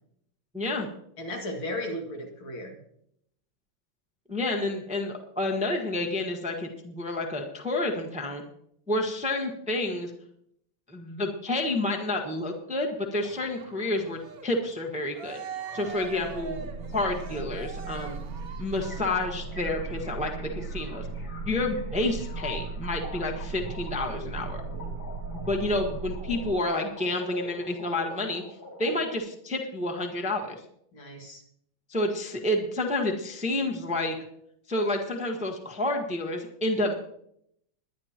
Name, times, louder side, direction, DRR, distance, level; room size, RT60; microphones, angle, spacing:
voice 1, 0.5-0.9 4.3-8.4 8.9-10.1 10.9-15.4 15.7-16.6 16.9-18.2 18.6-21.1 21.4-24.6 25.5-28.4 28.8-30.6 31.9-34.1 34.7-36.9, left 2 dB, 5° right, 2 dB, 1.0 m, -29 dB
voice 2, 1.2-2.8 30.9-31.4, left 1 dB, 65° left, 1 dB, 2.9 m, -35 dB
Cheering, 13.1-19.6, right 6 dB, 50° right, 1.3 m, -42 dB
sound 1, 15.7-26.5, right 4 dB, 70° right, 1.8 m, -37 dB
sound 2, 18.8-29.2, left 2 dB, 45° left, 3.6 m, -45 dB
21.5 x 10.5 x 3.0 m, 0.72 s
omnidirectional pair, 2.4 m